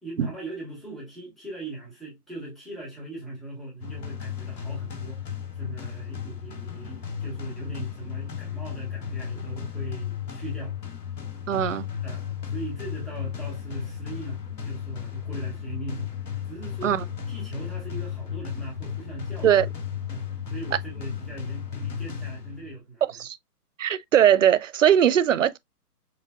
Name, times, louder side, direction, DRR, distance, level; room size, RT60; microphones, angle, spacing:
voice 1, 0.0-5.2 5.5-10.8 11.5-11.7 12.0-17.0 17.3-19.5 20.1-23.2, right 2 dB, ahead, 1.1 m, -39 dB
sound 1, 3.8-22.8, left 8 dB, 90° left, 1.5 m, -34 dB
voice 2, 11.5-11.8 16.8-17.0 19.4-19.7 23.2-23.4 23.8-25.6, right 10 dB, 55° right, 0.5 m, -20 dB
6.7 x 2.5 x 2.3 m
hypercardioid pair, 155°, 48 cm